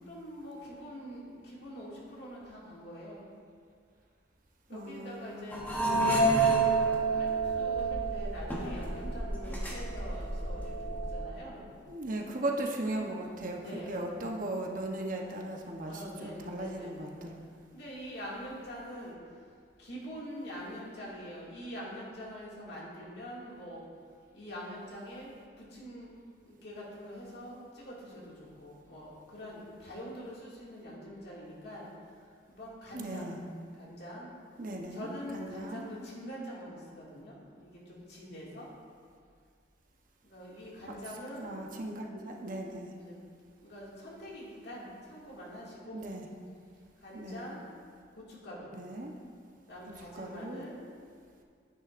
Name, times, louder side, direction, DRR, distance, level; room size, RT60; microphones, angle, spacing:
voice 1, 0.0-3.3 4.7-11.6 13.6-13.9 15.9-17.1 17.7-19.2 19.8-23.8 24.3-26.1 26.4-28.3 28.6-31.9 32.5-33.3 33.8-34.3 34.9-38.7 40.2-41.5 43.0-43.2 43.6-46.0 47.0-47.6 48.2-48.7 49.7-50.8, equal, 65° left, -5 dB, 2.2 m, -44 dB
voice 2, 4.7-5.5 11.9-17.4 32.9-33.4 34.6-35.9 40.9-41.0 41.4-42.9 45.9-46.3 47.1-47.4 48.7-49.1 50.1-50.6, right 1 dB, 50° right, 1 dB, 0.9 m, -37 dB
sound 1, 5.5-11.2, right 3 dB, 10° left, 1.2 m, -29 dB
9.8 x 9.6 x 2.5 m, 2.1 s
head